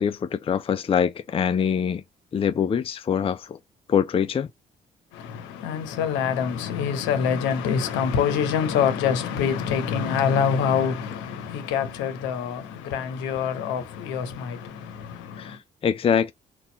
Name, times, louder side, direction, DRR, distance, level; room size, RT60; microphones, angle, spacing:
voice 1, 0.0-2.0 2.3-3.6 3.9-4.5 15.4-16.3, left 7 dB, 30° left, 0.4 m, -24 dB
voice 2, 5.1-15.6, left 7 dB, 70° left, 0.8 m, -25 dB
4.1 x 2.4 x 3.9 m
hypercardioid pair, 45°, 20 cm